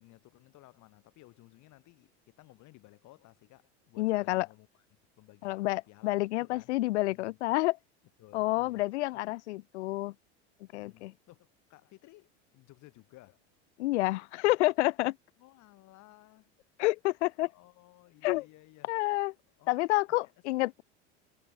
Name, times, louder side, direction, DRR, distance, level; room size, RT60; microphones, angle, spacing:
voice 1, 0.0-6.7 7.1-7.4 8.2-8.9 9.1-9.2 10.7-13.4 15.4-16.5 17.4-19.0 19.6-19.8 20.1-20.3, left 19 dB, 55° left, 7.3 m, -58 dB
voice 2, 4.0-4.5 5.4-7.8 8.3-10.1 10.7-11.1 13.8-15.2 16.8-17.5 18.2-18.4 18.9-19.3 19.7-20.8, left 19 dB, 85° left, 0.5 m, -29 dB
hypercardioid pair, 90°, 34 cm